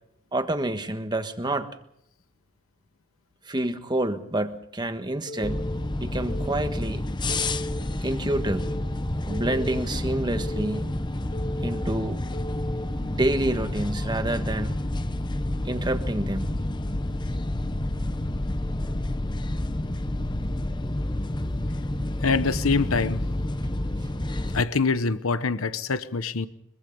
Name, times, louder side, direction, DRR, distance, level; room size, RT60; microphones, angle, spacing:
voice 1, 0.3-1.7 3.5-5.7 6.0-7.0 8.0-8.7 9.3-10.9 11.6-12.2 13.0-14.7 15.6-16.6, right 1 dB, 20° right, 1.5 m, -28 dB
Telephone, 5.3-5.8 6.3-6.8 7.3-7.8 8.3-8.8 9.3-9.8 10.3-10.8 11.3-11.8 12.3-12.8, equal, 40° left, 3.2 m, -37 dB
sound 1, 5.4-24.6, left 1 dB, 20° left, 0.9 m, -29 dB
voice 2, 22.2-23.2 24.5-26.5, left 4 dB, 85° left, 1.0 m, -24 dB
24.0 x 23.0 x 5.4 m
head